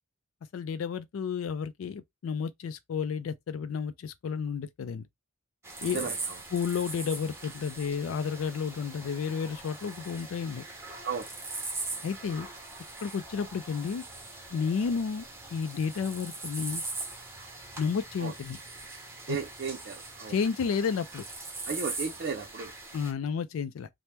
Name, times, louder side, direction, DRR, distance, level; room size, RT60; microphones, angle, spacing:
voice 1, 0.5-5.1 5.8-6.1 6.5-10.6 12.0-12.5 13.0-14.0 14.5-15.3 15.5-16.8 17.8-18.6 19.3-19.4 20.3-21.2 22.9-23.9, left 6 dB, 80° left, 0.3 m, -31 dB
sound 1, 5.6-23.1, right 3 dB, 10° right, 0.7 m, -41 dB
voice 2, 5.8-6.4 11.0-11.2 18.2-18.3 19.3-20.4 21.6-22.7, right 5 dB, 50° right, 0.5 m, -35 dB
2.9 x 2.1 x 3.3 m
head